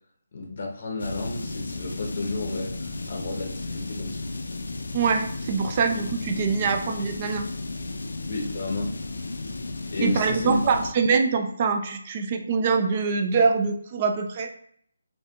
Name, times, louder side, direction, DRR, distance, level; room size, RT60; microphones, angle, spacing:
voice 1, 0.3-4.2 8.3-9.0 9.9-10.7, left 2 dB, 45° left, 1 dB, 0.7 m, -32 dB
sound 1, 1.0-10.9, left 2 dB, 80° left, 0.3 m, -34 dB
voice 2, 4.9-7.5 10.0-14.5, right 5 dB, 30° right, 5 dB, 0.3 m, -24 dB
2.5 x 2.5 x 2.3 m, 0.65 s
hypercardioid pair, 160°, 0 cm